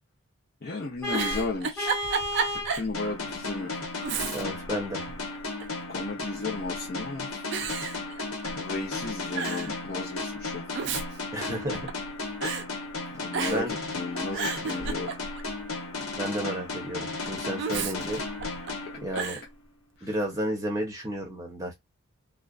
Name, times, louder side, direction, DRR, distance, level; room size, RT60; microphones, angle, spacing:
voice 1, 0.6-1.9 2.5-3.7 5.9-7.3 8.0-8.2 8.6-10.6 13.1-15.1 19.1-19.2 20.0-20.1, left 3 dB, 45° left, 0.5 m, -34 dB
Giggle, 0.9-2.9 3.3-3.4 4.0-4.7 5.0-5.8 6.6-7.0 7.5-8.7 9.0-9.1 9.3-9.7 10.5-12.1 12.4-12.7 13.3-13.8 14.1-15.5 17.6-18.7 19.1-19.5, right 5 dB, 50° right, 0.4 m, -32 dB
Vehicle horn car horn honking, 1.0-2.8, left 1 dB, 10° left, 1.0 m, -31 dB
sound 1, 2.9-19.5, left 3 dB, 85° left, 1.0 m, -35 dB
voice 2, 4.3-5.0 11.3-11.9 13.5-13.7 16.2-18.2 19.0-19.4 20.0-21.7, equal, 15° right, 0.8 m, -32 dB
2.4 x 2.1 x 2.3 m
head